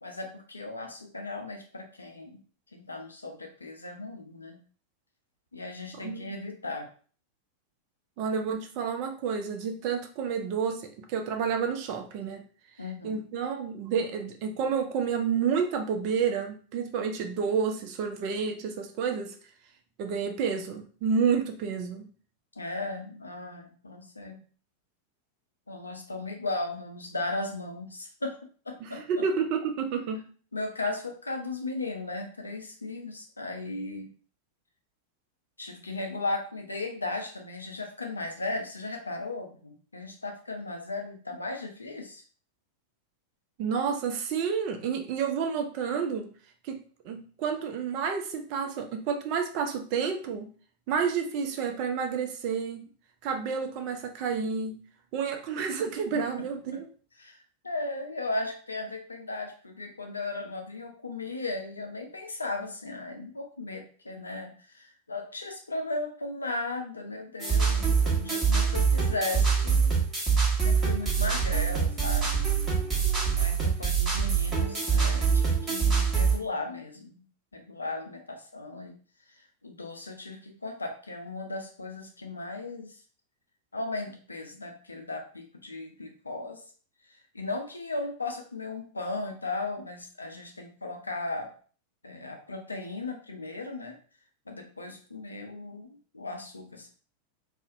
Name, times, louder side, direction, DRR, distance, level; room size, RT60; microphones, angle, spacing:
voice 1, 0.0-2.4 2.7-4.6 5.5-6.9 12.8-13.2 22.6-24.4 25.7-28.4 28.7-29.0 30.5-34.1 35.6-42.2 57.2-57.4 57.6-69.9 70.3-72.4 73.3-77.2 77.5-78.9 79.6-83.0 83.7-86.6 87.3-91.5 92.0-94.0 94.5-96.9, left 2 dB, 80° left, 4 dB, 0.4 m, -36 dB
voice 2, 8.2-12.4 13.0-19.3 20.0-22.1 28.8-30.3 43.6-46.3 46.6-46.8 47.0-50.5 50.9-52.8 53.2-54.8 55.1-56.9, right 6 dB, 45° right, 5 dB, 0.4 m, -30 dB
sound 1, 67.4-76.4, right 6 dB, 20° right, 1.1 m, -25 dB
2.4 x 2.0 x 2.5 m, 0.41 s
figure-of-eight pair, 90°, 0 cm